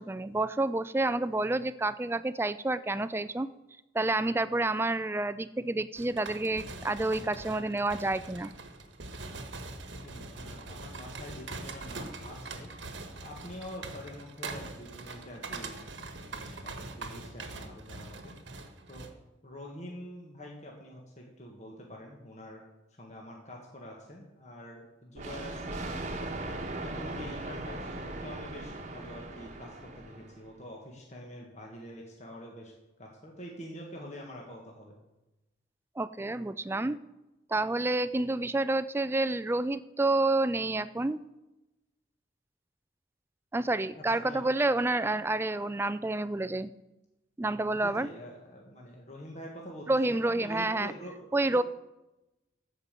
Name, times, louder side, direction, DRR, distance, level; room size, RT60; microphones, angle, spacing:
voice 1, 0.0-3.5 3.9-8.5 36.0-37.0 37.5-41.2 43.5-46.7 47.4-48.1 49.9-50.9 51.3-51.6, right 2 dB, 15° right, 14 dB, 0.3 m, -29 dB
sound 1, 6.0-19.1, right 3 dB, 80° right, 1.3 m, -43 dB
voice 2, 10.0-12.7 13.2-15.7 16.2-18.4 18.9-19.1 19.4-22.6 23.0-25.8 26.4-32.7 33.0-35.0 44.0-44.4 47.8-51.6, left 1 dB, 40° left, -1 dB, 1.6 m, -46 dB
Thunder, 25.2-30.5, right 2 dB, 40° right, 1.2 m, -39 dB
14.0 x 5.3 x 7.5 m, 1.0 s
head